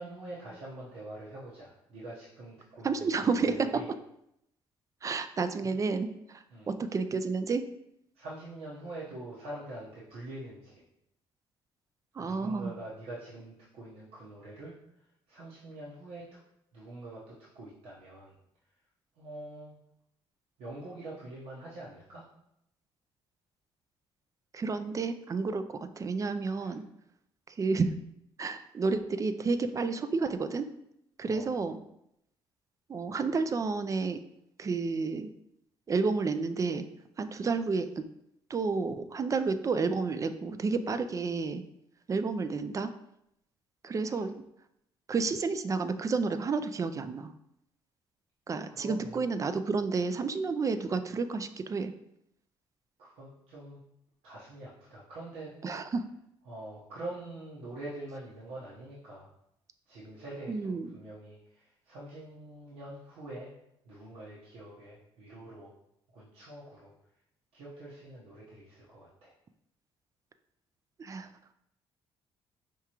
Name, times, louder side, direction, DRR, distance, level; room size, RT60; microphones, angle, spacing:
voice 1, 0.0-3.9 5.6-5.7 6.5-6.7 8.1-10.8 12.2-14.7 15.3-16.4 16.7-18.4 19.2-19.7 20.6-22.2 26.6-26.7 31.2-31.6 44.0-44.2 48.6-49.2 53.0-53.8 54.2-55.7 56.5-59.3 59.9-63.5 63.8-65.7 66.1-66.9 67.5-69.3, right 2 dB, 90° right, -7 dB, 1.0 m, -45 dB
voice 2, 2.8-3.5 5.0-7.7 12.1-12.7 24.5-26.8 27.5-27.9 28.4-30.7 31.2-31.8 32.9-34.2 34.6-35.3 35.9-36.9 37.2-38.0 38.5-41.6 42.1-42.9 43.8-44.3 45.1-47.3 48.5-51.9 55.6-55.8 60.5-61.0 71.0-71.3, right 4 dB, 35° right, 10 dB, 0.3 m, -31 dB
4.7 x 3.5 x 2.9 m, 0.78 s
cardioid pair, 85°, 10 cm